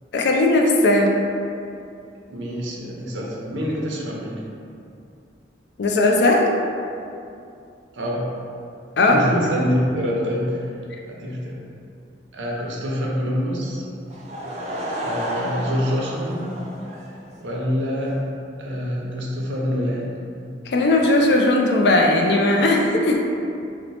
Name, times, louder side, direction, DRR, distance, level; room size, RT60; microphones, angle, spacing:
voice 1, 0.1-1.2 5.8-6.5 9.0-9.2 20.7-23.2, left 2 dB, 65° left, 1 dB, 0.4 m, -17 dB
voice 2, 2.3-4.4 7.9-8.3 9.1-10.7 11.1-11.6 12.3-13.8 15.0-16.5 17.4-18.1 18.6-20.2, equal, 85° right, -3 dB, 0.6 m, -26 dB
Laughter / Crowd, 14.1-17.6, equal, 35° right, 0.4 m, -31 dB
2.8 x 2.1 x 4.0 m, 2.5 s
head